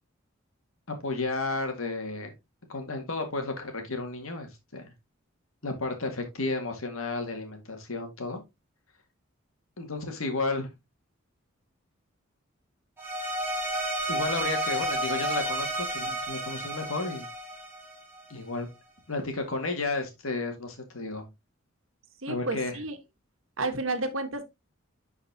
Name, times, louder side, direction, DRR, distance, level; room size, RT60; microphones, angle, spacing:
voice 1, 0.9-2.3 2.7-4.8 5.6-8.4 9.8-10.7 14.1-17.3 18.3-18.7 19.1-21.2 22.3-22.8, left 3 dB, 90° left, 2.1 m, -32 dB
sound 1, 13.0-18.3, right 1 dB, 10° right, 3.9 m, -31 dB
voice 2, 22.2-23.0 23.6-24.4, right 2 dB, 75° right, 1.4 m, -31 dB
10.5 x 4.7 x 2.8 m
head